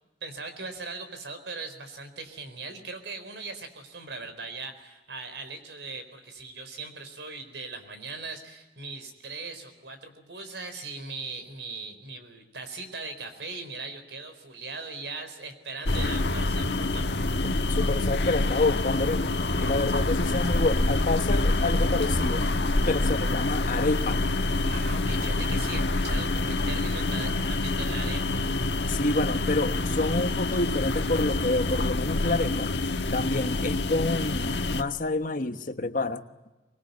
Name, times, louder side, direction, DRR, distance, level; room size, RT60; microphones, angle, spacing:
voice 1, 0.2-17.0 24.7-28.4, right 3 dB, 80° right, 9 dB, 4.3 m, -39 dB
sound 1, 15.9-34.8, left 2 dB, 80° left, 1.4 m, -26 dB
voice 2, 17.7-19.3 19.6-22.5 22.8-24.2 28.9-32.7 33.1-36.3, left 2 dB, 50° left, 9 dB, 1.3 m, -28 dB
24.5 x 21.0 x 9.6 m, 1.1 s
head